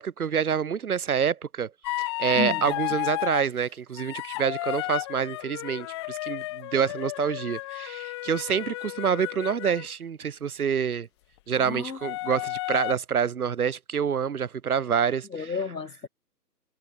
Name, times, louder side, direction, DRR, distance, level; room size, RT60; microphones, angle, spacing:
voice 1, 0.0-1.7 2.0-11.1 11.5-15.5, right 7 dB, 65° right, 6.7 m, -27 dB
sound 1, 1.8-3.5 4.0-9.9 12.0-12.9, left 19 dB, 15° left, 0.9 m, -33 dB
voice 2, 2.4-2.7 11.6-12.0 15.3-16.1, left 5 dB, 85° left, 3.5 m, -32 dB
hypercardioid pair, 145°, 48 cm